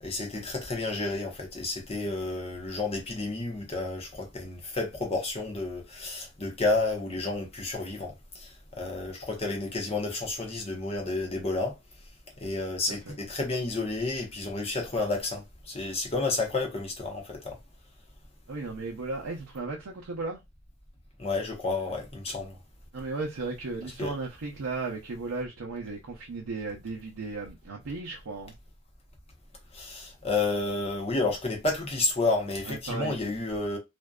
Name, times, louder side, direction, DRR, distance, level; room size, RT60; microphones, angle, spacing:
voice 1, 0.0-11.8 12.4-17.6 21.2-22.6 24.0-24.1 29.7-33.8, left 3 dB, 30° left, 0.7 m, -31 dB
voice 2, 18.5-20.4 22.9-28.5 32.6-33.2, right 3 dB, 90° right, 0.6 m, -35 dB
2.5 x 2.1 x 2.3 m
head